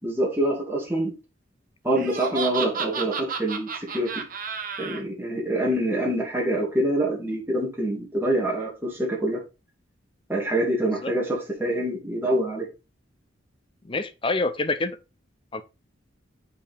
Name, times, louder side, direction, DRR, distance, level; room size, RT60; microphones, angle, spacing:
voice 1, 0.0-1.1 1.8-4.2 4.8-9.4 10.3-12.7, right 1 dB, 10° right, 2.2 m, -25 dB
Laughter, 1.9-5.0, right 5 dB, 45° right, 1.0 m, -31 dB
voice 2, 13.8-15.0 15.5-15.6, left 3 dB, 25° left, 0.6 m, -26 dB
7.4 x 4.6 x 3.5 m
head